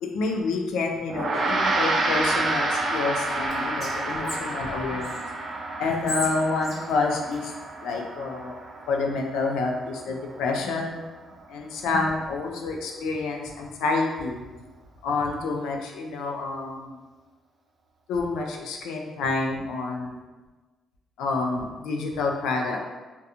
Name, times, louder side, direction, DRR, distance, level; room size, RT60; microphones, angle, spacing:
voice 1, 0.0-5.2 5.8-7.5 7.8-8.6 8.9-11.0 11.5-14.4 15.0-17.0 18.1-20.2 21.2-22.8, left 3 dB, 90° left, 1 dB, 0.3 m, -28 dB
Gong, 1.1-10.6, right 2 dB, 50° right, 0.4 m, -29 dB
Whispering, 3.2-5.2 5.8-8.0, left 1 dB, 40° left, 0.7 m, -38 dB
2.7 x 2.2 x 2.4 m, 1.3 s
cardioid pair, 90°, 0 cm